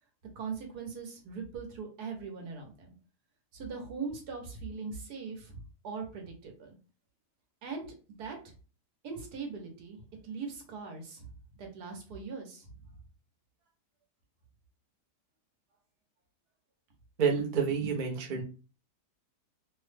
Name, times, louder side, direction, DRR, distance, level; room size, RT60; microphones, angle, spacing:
voice 1, 0.4-2.9 3.5-6.8 7.6-7.9 8.2-8.5 9.0-10.0 10.2-11.3 11.6-12.7, right 5 dB, 80° right, 2 dB, 1.4 m, -40 dB
voice 2, 17.2-18.4, right 6 dB, 55° right, 1 dB, 0.5 m, -28 dB
3.1 x 2.1 x 3.2 m, 0.35 s
omnidirectional pair, 1.7 m